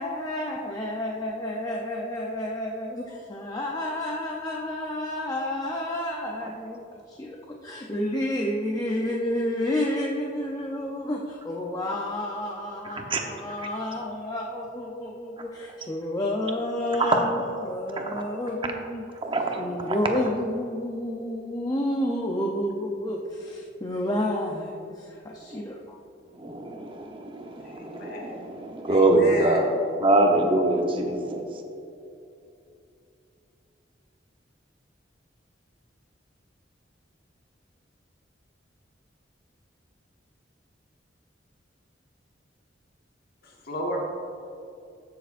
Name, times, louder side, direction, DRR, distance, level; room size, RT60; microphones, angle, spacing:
voice 1, 0.0-6.8 7.1-19.0 19.6-26.0, left 1 dB, 20° left, -1 dB, 0.6 m, -30 dB
voice 2, 12.8-13.2 13.6-13.7 17.0-17.2 18.0-18.3 19.2-20.0 25.5-25.6 26.3-29.7 30.0-31.4, right 2 dB, 30° right, 2 dB, 0.9 m, -24 dB
voice 3, 27.6-28.4 28.9-29.6 43.4-44.0, equal, 55° left, -2 dB, 1.4 m, -34 dB
13.5 x 6.7 x 2.5 m, 2.6 s
head